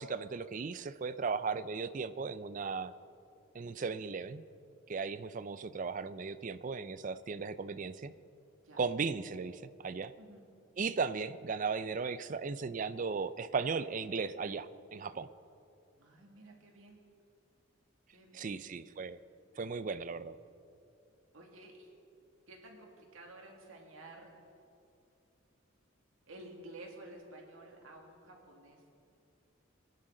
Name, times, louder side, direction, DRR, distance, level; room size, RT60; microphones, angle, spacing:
voice 1, 0.0-2.9 3.5-4.4 4.9-8.1 8.8-10.1 10.8-15.3 18.3-19.2 19.6-20.4, right 5 dB, 40° right, 14 dB, 0.4 m, -36 dB
voice 2, 16.0-17.0 18.1-18.6 21.3-21.9 22.5-24.6 26.3-28.8, right 2 dB, 75° right, 0 dB, 2.3 m, -52 dB
23.5 x 10.5 x 3.8 m, 2.6 s
head